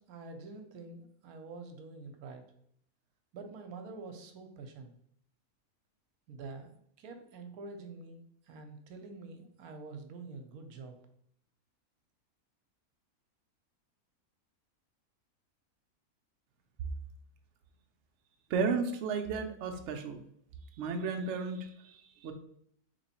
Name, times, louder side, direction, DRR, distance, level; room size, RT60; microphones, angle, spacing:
voice 1, 0.1-2.4 3.3-4.9 6.3-8.2 8.5-10.9, right 3 dB, 85° right, 5 dB, 1.1 m, -46 dB
voice 2, 18.5-20.2 20.8-22.3, right 5 dB, 65° right, 5 dB, 0.7 m, -33 dB
3.1 x 3.0 x 4.1 m, 0.68 s
omnidirectional pair, 1.6 m